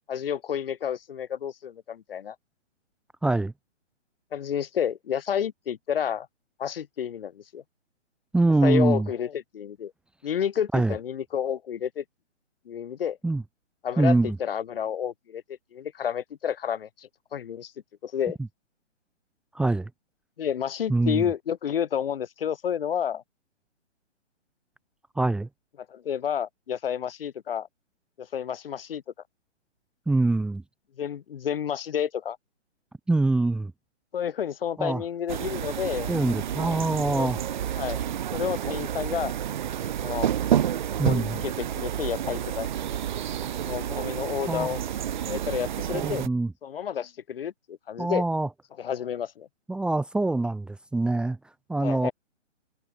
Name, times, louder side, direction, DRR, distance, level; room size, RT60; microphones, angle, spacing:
voice 1, 0.1-2.4 4.3-6.3 6.6-7.6 8.6-9.9 10.2-12.0 12.7-13.2 13.8-15.4 15.7-17.7 18.0-18.4 20.4-23.2 25.9-27.7 28.2-29.0 31.0-32.4 34.1-36.1 37.1-37.3 37.8-38.0 38.3-39.3 40.0-40.3 41.0-42.7 43.6-44.8 45.3-46.3 46.6-48.2 48.8-49.5 51.8-52.1, left 8 dB, 50° left, 4.0 m, -30 dB
voice 2, 3.2-3.5 8.3-9.1 10.7-10.9 13.2-13.4 14.0-14.4 19.5-19.9 20.9-21.2 25.2-25.5 30.1-30.6 33.1-33.7 34.8-35.0 36.1-37.4 41.0-41.4 44.5-44.7 45.9-46.5 48.0-48.5 49.7-51.4 51.7-52.1, right 2 dB, ahead, 1.8 m, -24 dB
sound 1, 35.3-46.3, right 10 dB, 40° right, 1.1 m, -29 dB
hypercardioid pair, 150°, 36 cm